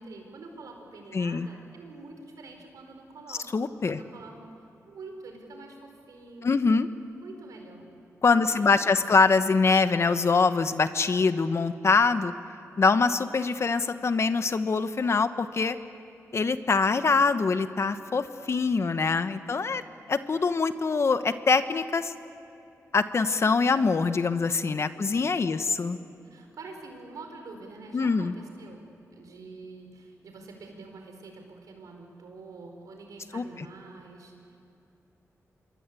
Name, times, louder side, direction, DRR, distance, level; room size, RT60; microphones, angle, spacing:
voice 1, 0.0-4.5 4.8-6.5 7.2-7.9 8.2-9.0 19.5-19.9 24.8-25.6 26.3-28.8 29.1-34.6, right 3 dB, 85° right, 4 dB, 4.6 m, -46 dB
voice 2, 1.1-1.5 3.5-4.0 6.4-6.9 8.2-12.3 12.8-15.8 16.3-19.8 20.1-22.1 22.9-26.0 27.9-28.3 33.3-33.4, left 4 dB, 50° left, 11 dB, 1.2 m, -24 dB
27.0 x 23.0 x 8.4 m, 2.8 s
cardioid pair, 80°, 6 cm